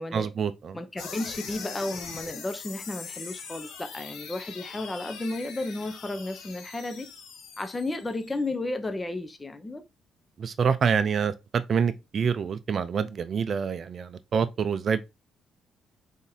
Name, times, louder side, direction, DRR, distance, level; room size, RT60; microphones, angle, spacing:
voice 1, 0.1-0.8 10.4-15.0, right 6 dB, 50° right, 0.4 m, -26 dB
voice 2, 0.7-7.1 7.6-9.8, left 2 dB, 20° left, 0.7 m, -33 dB
sound 1, 1.0-8.4, left 6 dB, 85° left, 0.8 m, -42 dB
4.0 x 3.5 x 2.7 m
cardioid pair, 90°, 0 cm